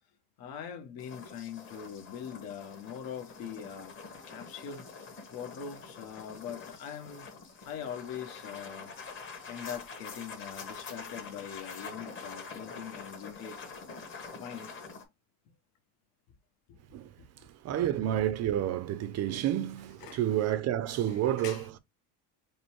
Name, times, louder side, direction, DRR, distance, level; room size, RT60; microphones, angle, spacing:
voice 1, 0.4-4.0 4.3-7.3 7.6-8.9 9.5-13.7 14.3-14.7 16.7-16.8 20.0-20.2 21.1-21.7, left 8 dB, 65° left, 1.1 m, -42 dB
sound 1, 1.0-15.0, left 4 dB, 30° left, 1.3 m, -46 dB
voice 2, 17.6-21.8, right 11 dB, 45° right, 0.4 m, -30 dB
5.1 x 2.1 x 4.4 m
cardioid pair, 155°, 39 cm